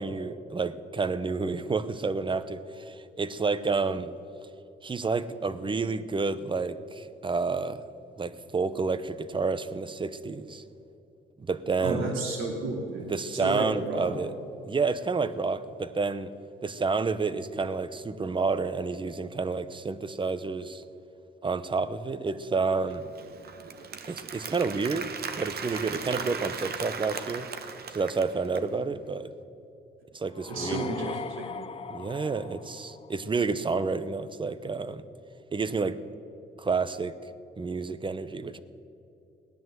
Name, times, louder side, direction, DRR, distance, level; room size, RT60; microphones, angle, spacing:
voice 1, 0.0-4.1 4.8-7.8 8.2-10.6 11.4-12.1 13.1-14.3 14.6-16.3 16.6-20.8 21.4-23.1 24.1-27.5 27.9-29.3 30.1-31.0 31.9-35.1 35.5-36.0 36.6-37.1 37.6-38.6, right 4 dB, 25° right, 14 dB, 0.8 m, -29 dB
voice 2, 11.8-14.1 30.5-31.5, right 2 dB, 85° right, 0 dB, 3.0 m, -32 dB
Applause, 22.9-28.7, right 5 dB, 55° right, 1.0 m, -38 dB
sound 1, 30.3-33.4, left 5 dB, 30° left, 0.5 m, -39 dB
17.0 x 10.5 x 7.8 m, 2.8 s
cardioid pair, 90°, 20 cm